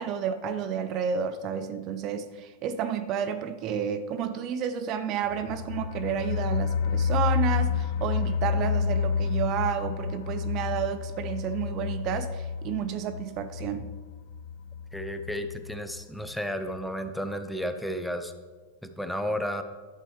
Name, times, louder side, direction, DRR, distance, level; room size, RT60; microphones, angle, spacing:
voice 1, 0.0-13.9, right 8 dB, 45° right, 11 dB, 0.6 m, -31 dB
sound 1, 5.2-15.9 16.3-16.4 16.7-16.8, left 6 dB, 60° left, 0.6 m, -30 dB
voice 2, 14.9-18.3 18.8-19.6, equal, ahead, 7 dB, 0.7 m, -32 dB
11.0 x 7.5 x 3.2 m, 1.3 s
hypercardioid pair, 100°, 0 cm